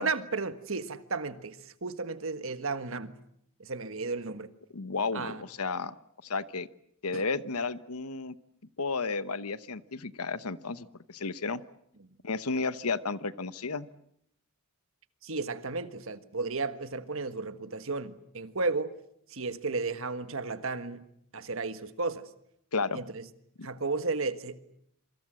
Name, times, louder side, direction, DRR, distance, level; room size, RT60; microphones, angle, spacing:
voice 1, 0.0-3.1 3.6-4.5 5.1-5.4 7.1-7.2 15.2-18.9 19.3-22.3 22.9-23.3 23.6-24.6, right 3 dB, 60° right, 1.5 m, -34 dB
voice 2, 4.7-5.9 6.2-6.7 7.0-8.3 8.8-11.6 12.2-13.9 22.7-23.0, left 4 dB, 80° left, 1.1 m, -32 dB
27.0 x 25.0 x 7.7 m
head